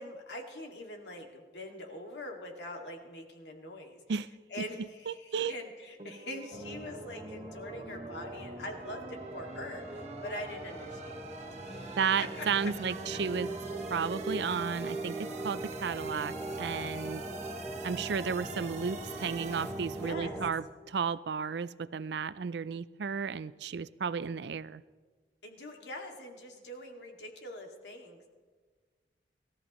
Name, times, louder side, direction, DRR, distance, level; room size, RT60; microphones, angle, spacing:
voice 1, 0.0-4.0 4.5-11.3 11.6-12.5 20.0-20.4 25.4-28.3, left 1 dB, 75° left, 2 dB, 2.2 m, -43 dB
voice 2, 4.6-5.5 12.0-13.5 13.9-17.2 17.8-24.8, right 6 dB, 75° right, 16 dB, 0.4 m, -33 dB
sound 1, 6.0-20.1, right 3 dB, 40° right, 1.4 m, -46 dB
sound 2, 6.5-20.5, right 1 dB, 5° left, 1.0 m, -41 dB
25.5 x 14.0 x 3.1 m, 1.5 s
head